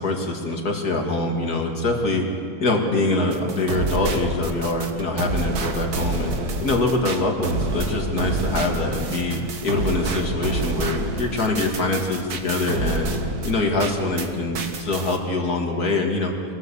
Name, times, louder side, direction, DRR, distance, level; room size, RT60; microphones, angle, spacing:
voice 1, 0.0-2.2 2.6-6.4 6.6-13.1 13.4-16.3, left 2 dB, 90° left, 2 dB, 2.9 m, -24 dB
sound 1, 3.3-14.3 14.5-15.2, right 2 dB, 90° right, 1.9 m, -28 dB
24.0 x 17.5 x 7.2 m, 2.4 s
omnidirectional pair, 1.6 m